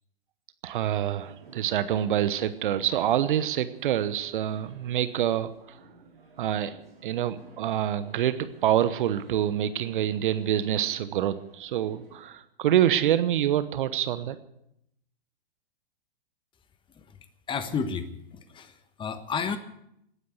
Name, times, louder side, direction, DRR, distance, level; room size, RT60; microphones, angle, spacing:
voice 1, 0.6-5.8 6.4-6.8 7.0-14.4, right 11 dB, 60° right, 13 dB, 1.0 m, -26 dB
sound 1, 1.2-12.3, right 3 dB, 80° right, 5.0 m, -54 dB
voice 2, 17.5-19.6, left 6 dB, 15° left, 11 dB, 1.2 m, -32 dB
18.0 x 10.0 x 8.0 m, 0.77 s
hypercardioid pair, 110°, 29 cm